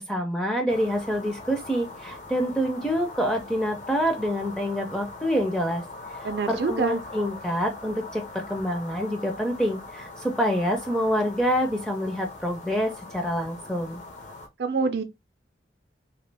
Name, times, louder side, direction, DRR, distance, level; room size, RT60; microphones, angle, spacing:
voice 1, 0.0-5.8 6.2-14.0, equal, 5° left, 0.4 m, -27 dB
sound 1, 0.7-14.5, left 2 dB, 40° left, 0.6 m, -41 dB
voice 2, 6.2-7.0 14.6-15.0, right 4 dB, 60° right, 0.4 m, -26 dB
2.9 x 2.8 x 3.3 m
head